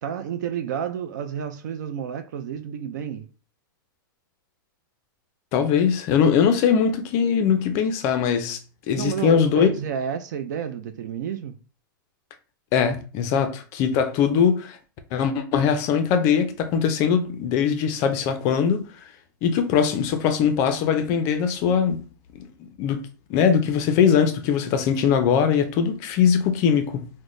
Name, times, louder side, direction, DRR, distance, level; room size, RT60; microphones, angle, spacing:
voice 1, 0.0-3.3 8.9-11.6, right 8 dB, 55° right, 0.4 m, -30 dB
voice 2, 5.5-8.6 8.9-9.7 12.7-14.8 15.1-18.8 19.4-22.1 22.3-23.0 23.3-27.1, left 7 dB, 25° left, 0.4 m, -21 dB
3.8 x 2.1 x 3.1 m
supercardioid pair, 170°, 12 cm